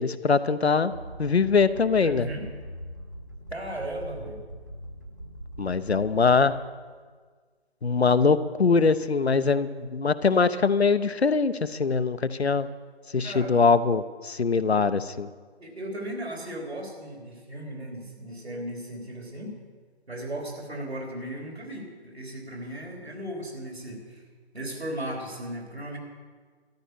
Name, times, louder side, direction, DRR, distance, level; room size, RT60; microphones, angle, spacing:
voice 1, 0.0-0.9 1.2-2.3 5.6-6.6 7.8-12.7 13.1-15.3, left 4 dB, 70° left, 13 dB, 0.7 m, -22 dB
sound 1, 0.9-6.7, right 1 dB, 20° right, 0.6 m, -42 dB
voice 2, 2.0-2.5 3.5-4.4 13.2-13.5 15.6-19.5 20.1-24.2 24.5-26.0, right 1 dB, 70° right, 1 dB, 3.6 m, -36 dB
13.0 x 11.0 x 6.6 m, 1.5 s
figure-of-eight pair, 150°, 33 cm